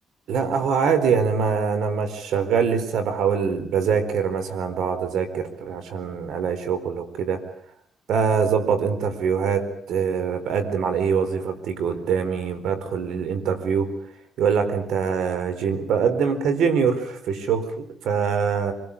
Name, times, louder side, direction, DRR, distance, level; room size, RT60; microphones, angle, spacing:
voice 1, 0.3-7.4 8.1-13.9 14.4-18.7, right 6 dB, 80° right, 10 dB, 4.2 m, -24 dB
25.5 x 20.0 x 8.5 m, 0.66 s
cardioid pair, 90°, 0 cm